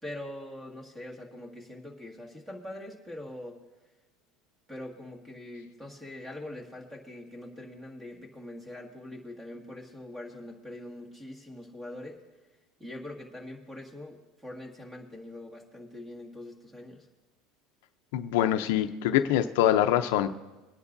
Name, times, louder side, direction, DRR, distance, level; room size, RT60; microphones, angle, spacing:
voice 1, 0.0-3.6 4.7-12.2 12.8-17.1, left 1 dB, 10° right, 1 dB, 2.0 m, -43 dB
voice 2, 18.1-20.3, left 12 dB, 80° left, 9 dB, 0.6 m, -24 dB
23.0 x 9.9 x 2.7 m, 1.1 s
supercardioid pair, 135°, 0 cm